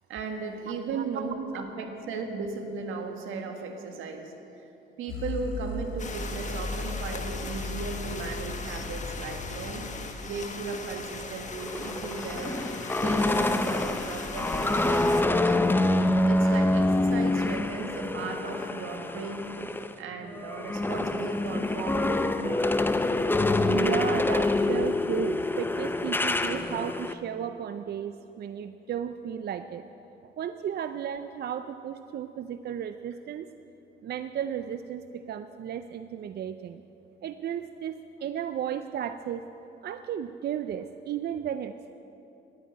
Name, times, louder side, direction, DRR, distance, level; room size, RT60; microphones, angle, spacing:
voice 1, 0.1-4.3 4.6-4.7 5.0-9.8 10.2-15.5 16.2-22.6, right 4 dB, 85° right, 4 dB, 1.5 m, -36 dB
voice 2, 0.9-1.2 23.7-29.9 30.2-33.5 34.0-36.8 37.2-39.5 39.8-41.9, right 9 dB, 55° right, 10 dB, 0.5 m, -34 dB
sound 1, 5.1-10.3, left 2 dB, 80° left, 2.7 m, -37 dB
sound 2, 6.0-15.2, left 4 dB, 35° left, 1.3 m, -39 dB
sound 3, 11.5-19.9 20.3-27.1, left 2 dB, 10° left, 0.6 m, -26 dB
11.0 x 9.5 x 9.5 m, 2.9 s
cardioid pair, 90°, 20 cm